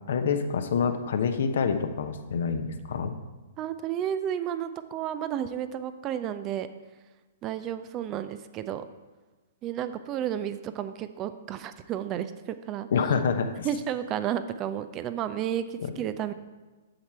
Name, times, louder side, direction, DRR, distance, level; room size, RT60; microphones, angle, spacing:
voice 1, 0.1-3.1 12.9-13.7 15.8-15.9, left 6 dB, 60° left, 8 dB, 0.7 m, -27 dB
voice 2, 3.6-6.7 7.4-8.8 9.6-12.9 13.6-16.3, right 10 dB, 30° right, 11 dB, 0.4 m, -32 dB
7.8 x 7.2 x 4.3 m, 1.2 s
figure-of-eight pair, 115°, 0 cm